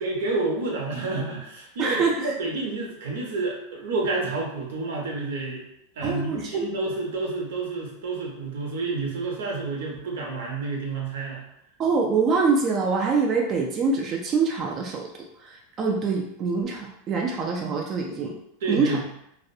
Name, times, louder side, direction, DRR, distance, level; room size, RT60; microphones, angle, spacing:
voice 1, 0.0-5.6 6.0-11.4 18.6-19.0, right 3 dB, 85° right, -1 dB, 0.7 m, -29 dB
voice 2, 1.8-2.3 6.0-6.7 11.8-15.0 15.4-18.4 18.7-19.0, right 4 dB, 30° right, 0 dB, 0.3 m, -25 dB
2.3 x 2.0 x 2.6 m, 0.77 s
supercardioid pair, 150°, 0 cm